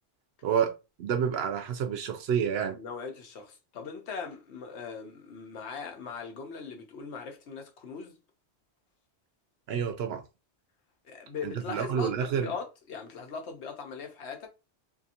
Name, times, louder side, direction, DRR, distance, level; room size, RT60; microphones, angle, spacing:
voice 1, 0.4-0.7 1.0-2.8 9.7-10.2 11.4-12.5, right 8 dB, 75° right, 0.8 m, -29 dB
voice 2, 2.7-8.2 11.0-14.5, left 5 dB, 85° left, 1.0 m, -40 dB
2.7 x 2.7 x 2.5 m
omnidirectional pair, 1.1 m